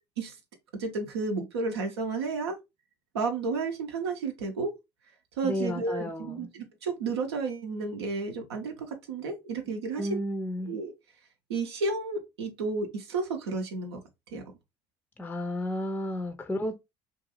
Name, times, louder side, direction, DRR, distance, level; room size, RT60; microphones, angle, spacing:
voice 1, 0.8-2.6 3.1-4.7 5.4-10.2 10.7-10.9 11.5-14.0 14.3-14.4, right 3 dB, 90° right, 0.6 m, -32 dB
voice 2, 5.4-6.5 10.0-10.7 15.2-16.8, left 1 dB, 10° left, 0.4 m, -32 dB
2.6 x 2.3 x 2.8 m
hypercardioid pair, 60°, 13 cm